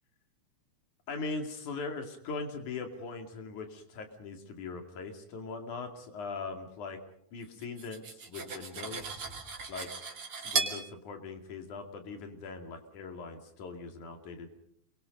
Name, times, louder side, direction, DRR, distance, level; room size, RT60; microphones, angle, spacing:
voice 1, 1.1-7.0 7.3-9.2 9.7-9.9 10.3-14.5, left 4 dB, 85° left, 5 dB, 4.0 m, -40 dB
Cutlery silverware, 7.6-10.8, right 4 dB, 45° right, 3.7 m, -36 dB
30.0 x 23.0 x 5.3 m, 0.67 s
omnidirectional pair, 3.4 m